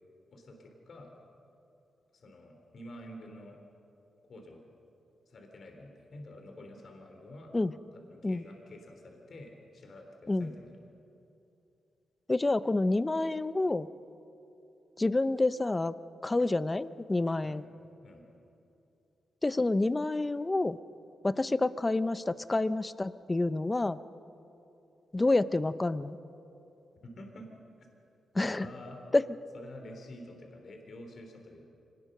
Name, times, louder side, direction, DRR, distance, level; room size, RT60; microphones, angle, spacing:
voice 1, 0.3-1.1 2.1-3.6 4.3-4.6 5.3-7.5 7.9-10.8 17.4-17.7 18.0-18.2 27.0-27.5 28.5-29.0 29.5-31.7, left 1 dB, 60° left, 3 dB, 3.4 m, -48 dB
voice 2, 12.3-13.9 15.0-15.9 16.2-17.6 19.4-20.8 21.2-24.0 25.1-26.2 28.3-28.7 29.1-29.2, left 2 dB, 20° left, 15 dB, 0.7 m, -28 dB
25.5 x 19.5 x 6.6 m, 2.8 s
cardioid pair, 90°, 0 cm